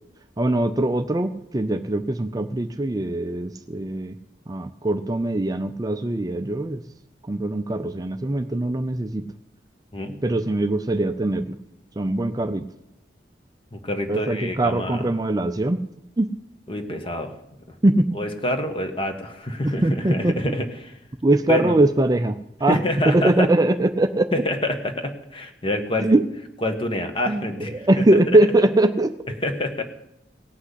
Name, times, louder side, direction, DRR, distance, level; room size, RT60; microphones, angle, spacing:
voice 1, 0.4-4.2 4.5-6.8 7.3-9.3 10.2-11.6 12.0-12.7 14.1-15.8 16.2-16.3 17.8-18.1 19.6-20.5 21.2-22.8 23.1-24.3 26.0-26.2 27.3-27.4 27.7-29.1, right 1 dB, 20° right, 8 dB, 0.5 m, -21 dB
voice 2, 13.7-15.1 16.7-17.3 18.1-21.0 21.5-21.8 22.7-23.5 24.3-26.1 26.6-28.2 29.4-29.8, left 1 dB, 30° left, 6 dB, 1.3 m, -27 dB
17.5 x 6.1 x 8.2 m, 0.87 s
head